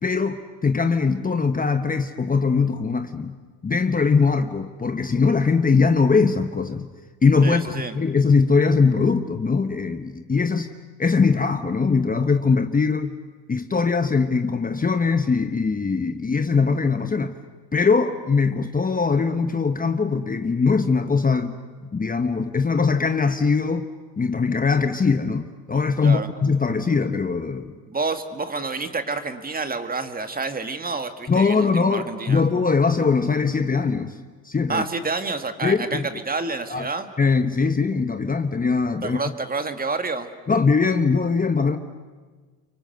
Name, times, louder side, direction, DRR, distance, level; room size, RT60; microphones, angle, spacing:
voice 1, 0.0-3.3 3.6-6.9 7.2-10.7 11.0-13.1 13.5-17.4 17.7-23.9 24.2-27.8 31.3-34.2 34.4-34.8 35.6-36.1 36.7-36.9 37.2-39.2 40.5-41.8, left 4 dB, 20° left, 9 dB, 1.1 m, -21 dB
voice 2, 7.4-7.9 26.0-26.3 27.9-32.5 34.7-37.1 39.0-40.3, right 3 dB, 20° right, 8 dB, 1.9 m, -28 dB
30.0 x 24.0 x 7.9 m, 1.4 s
cardioid pair, 110°, 39 cm